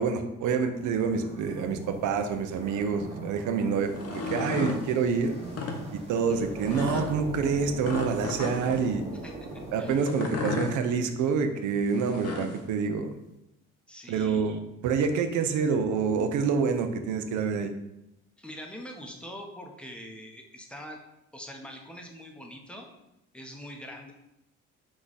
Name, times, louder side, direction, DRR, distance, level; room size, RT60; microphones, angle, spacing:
voice 1, 0.0-5.3 5.9-9.1 9.7-13.1 14.1-17.7, right 5 dB, 80° right, 7 dB, 0.5 m, -27 dB
sound 1, 0.7-10.0, right 2 dB, 20° right, 1.0 m, -41 dB
sound 2, 3.9-4.8 5.4-5.8 6.7-7.1 7.8-8.8 10.0-10.7 11.9-12.6, left 4 dB, 55° left, 0.7 m, -33 dB
voice 2, 9.2-10.0 13.9-14.5 18.4-21.0 21.3-22.9 23.3-24.1, equal, 5° left, 1 dB, 0.7 m, -43 dB
4.9 x 2.3 x 4.0 m, 0.89 s
cardioid pair, 90°, 30 cm